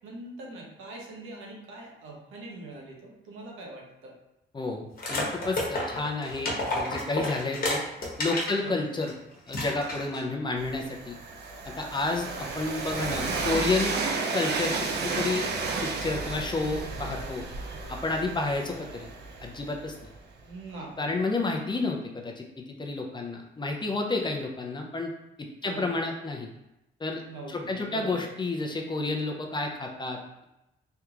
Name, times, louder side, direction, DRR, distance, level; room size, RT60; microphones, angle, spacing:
voice 1, 0.0-4.1 8.6-8.8 12.3-12.5 18.3-18.4 20.4-21.1 25.6-25.9 27.2-28.3, right 2 dB, 85° right, -1 dB, 0.9 m, -42 dB
voice 2, 4.5-7.8 8.2-9.1 9.5-11.2 11.6-13.9 14.3-17.5 17.9-19.1 19.4-20.0 21.0-25.1 25.4-26.5 27.0-27.2 27.5-30.4, left 3 dB, 25° left, 2 dB, 0.5 m, -30 dB
sound 1, 5.0-8.6 9.0-9.1 9.5-10.3, left 1 dB, 45° left, 1.1 m, -31 dB
Train, 10.6-20.4, right 4 dB, 55° right, 0.5 m, -33 dB
3.4 x 2.9 x 2.4 m, 0.90 s
cardioid pair, 90°, 20 cm